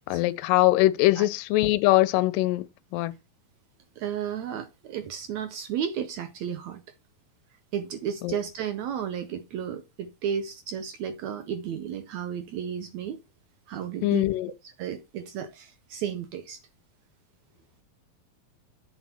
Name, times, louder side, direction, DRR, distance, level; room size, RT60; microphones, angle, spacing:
voice 1, 0.1-2.7 2.9-3.1 8.2-8.4 14.0-14.5, left 17 dB, 80° left, 2.2 m, -22 dB
voice 2, 4.0-6.8 7.7-13.2 13.7-14.3 14.8-16.6, right 8 dB, 80° right, 1.6 m, -33 dB
8.7 x 4.1 x 5.8 m
omnidirectional pair, 4.1 m